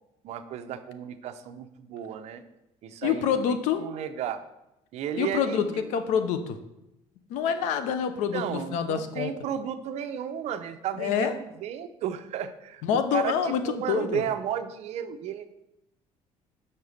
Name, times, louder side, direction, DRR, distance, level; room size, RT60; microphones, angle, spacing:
voice 1, 0.2-2.4 2.8-3.4 3.7-4.4 4.9-5.8 8.3-15.5, right 9 dB, 65° right, 10 dB, 0.7 m, -33 dB
voice 2, 3.0-3.8 5.2-6.6 7.3-9.3 11.0-11.3 12.8-14.2, left 7 dB, 85° left, 10 dB, 0.8 m, -27 dB
5.8 x 5.4 x 6.5 m, 0.91 s
cardioid pair, 125°, 12 cm